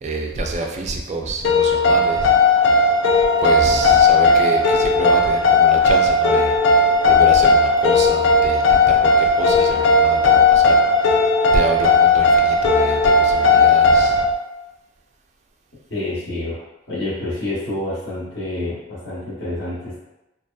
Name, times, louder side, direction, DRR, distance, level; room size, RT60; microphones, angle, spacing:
voice 1, 0.0-2.3 3.4-10.8 11.5-14.3, right 2 dB, 35° right, 2 dB, 0.3 m, -27 dB
sound 1, 1.4-14.3, left 3 dB, 85° left, 0.3 m, -15 dB
voice 2, 15.9-16.6 16.9-20.0, left 1 dB, 65° left, -9 dB, 0.9 m, -28 dB
2.6 x 2.3 x 2.3 m, 0.99 s
head